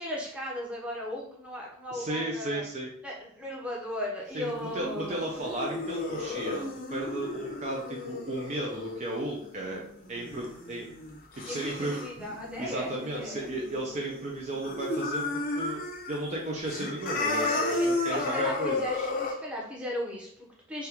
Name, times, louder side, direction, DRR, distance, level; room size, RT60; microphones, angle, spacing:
voice 1, 0.0-2.6 3.0-5.3 11.5-13.5 17.4-20.9, left 1 dB, 5° right, -4 dB, 0.7 m, -37 dB
voice 2, 1.9-2.9 4.3-9.8 10.1-10.9 11.3-12.0 12.6-15.8 16.1-19.1, right 1 dB, 35° right, -2 dB, 0.4 m, -34 dB
sound 1, 4.6-14.2 14.5-16.2 16.5-19.3, left 2 dB, 45° left, 0.5 m, -33 dB
3.5 x 2.2 x 2.9 m, 0.67 s
head